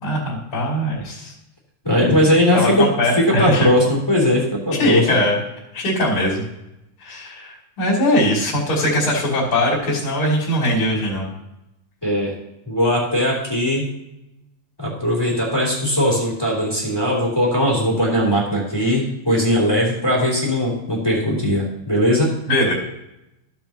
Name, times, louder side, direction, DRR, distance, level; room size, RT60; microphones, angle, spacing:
voice 1, 0.0-1.3 2.5-3.7 4.7-5.4 5.7-6.4 7.0-11.3 22.5-22.7, left 1 dB, 45° left, -7 dB, 3.5 m, -20 dB
voice 2, 1.8-5.2 12.0-12.4 12.6-13.9 14.8-22.4, equal, 10° left, -4 dB, 2.7 m, -19 dB
15.0 x 7.2 x 2.9 m, 0.90 s
omnidirectional pair, 3.6 m